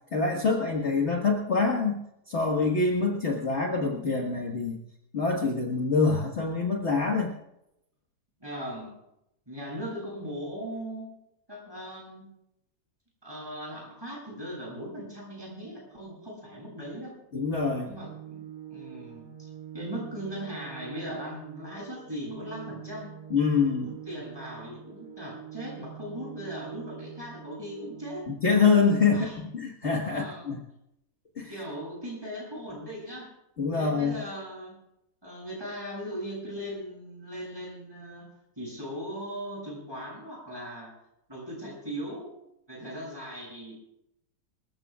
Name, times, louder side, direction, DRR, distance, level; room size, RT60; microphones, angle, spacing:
voice 1, 0.1-2.0 2.3-4.8 5.1-7.3 17.3-17.9 23.3-23.9 28.3-29.3 29.5-30.6 31.4-31.5 33.6-34.2, left 4 dB, 45° left, 0 dB, 1.8 m, -25 dB
voice 2, 8.4-8.9 9.5-11.1 11.5-12.3 13.2-17.1 17.8-18.4 18.7-23.2 23.8-28.3 29.1-29.4 30.1-30.5 31.5-33.3 33.7-34.8 35.2-38.3 38.6-40.9 41.3-42.3 42.7-43.8, equal, 15° right, -3 dB, 7.6 m, -39 dB
Organ, 17.6-28.5, right 11 dB, 30° right, 4.8 m, -45 dB
26.5 x 14.5 x 2.4 m, 0.82 s
omnidirectional pair, 1.7 m